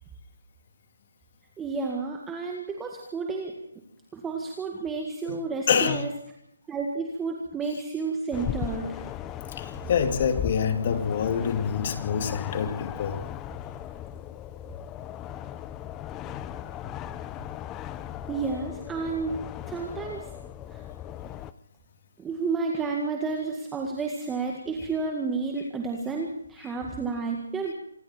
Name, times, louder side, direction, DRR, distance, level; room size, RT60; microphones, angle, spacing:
voice 1, 1.6-3.5 4.1-6.1 6.7-9.0 18.3-19.4 19.7-20.3 20.7-20.8 22.2-27.7, right 4 dB, 10° right, 1 dB, 2.0 m, -31 dB
voice 2, 5.7-6.0 9.5-13.2, left 7 dB, 40° left, 7 dB, 2.6 m, -26 dB
sound 1, 8.3-21.5, left 11 dB, 15° left, 0.7 m, -37 dB
27.0 x 21.0 x 4.5 m, 0.75 s
hypercardioid pair, 165°, 0 cm